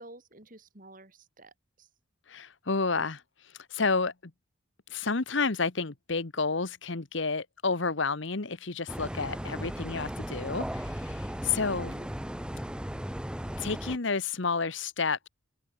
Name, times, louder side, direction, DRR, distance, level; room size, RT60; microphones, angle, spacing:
voice 1, 0.0-1.9 9.4-9.6 11.8-12.1, right 1 dB, 40° right, 3.4 m, -51 dB
voice 2, 2.3-4.3 4.9-11.9 13.6-15.3, left 4 dB, 65° left, 1.2 m, -30 dB
sound 1, 8.9-14.0, equal, 5° right, 0.7 m, -36 dB
open air
head